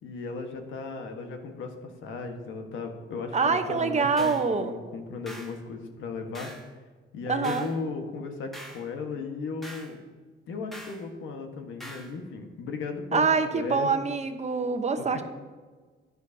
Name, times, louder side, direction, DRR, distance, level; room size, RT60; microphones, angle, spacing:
voice 1, 0.0-6.5 7.1-10.0 10.5-13.9 15.0-15.1, left 4 dB, 75° left, 4 dB, 1.4 m, -36 dB
voice 2, 3.3-4.7 7.3-7.7 13.1-15.2, right 5 dB, 35° right, 8 dB, 0.9 m, -25 dB
sound 1, 4.2-4.5 5.3-5.6 6.3-6.7 7.4-7.8 8.5-8.9 9.6-9.9 10.7-11.0 11.8-12.1, right 1 dB, ahead, 1.5 m, -43 dB
11.5 x 9.6 x 2.8 m, 1.4 s
cardioid pair, 90°, 20 cm